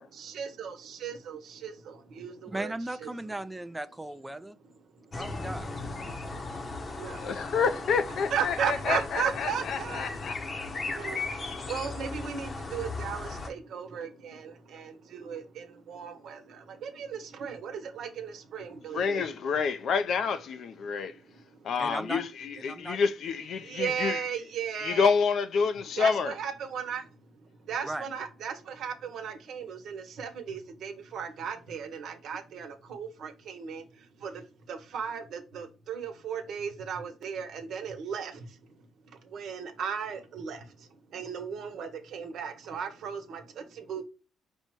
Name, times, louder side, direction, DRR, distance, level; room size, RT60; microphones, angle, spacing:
voice 1, 0.1-2.7 3.0-3.1 4.6-5.2 6.0-6.1 6.7-7.2 8.3-10.1 10.6-19.3 23.6-25.1 26.0-27.1 27.4-38.6 39.2-44.0, right 7 dB, 70° right, 1.0 m, -36 dB
voice 2, 2.5-4.6 5.2-5.7 21.8-22.2 22.7-23.0 27.8-28.1, right 1 dB, 10° right, 0.4 m, -36 dB
sound 1, 5.1-13.5, left 3 dB, 35° left, 0.8 m, -37 dB
voice 3, 7.2-10.4 18.9-21.2 21.6-24.3 24.8-26.3, left 5 dB, 65° left, 0.4 m, -28 dB
5.2 x 2.1 x 4.6 m
cardioid pair, 90°, 0 cm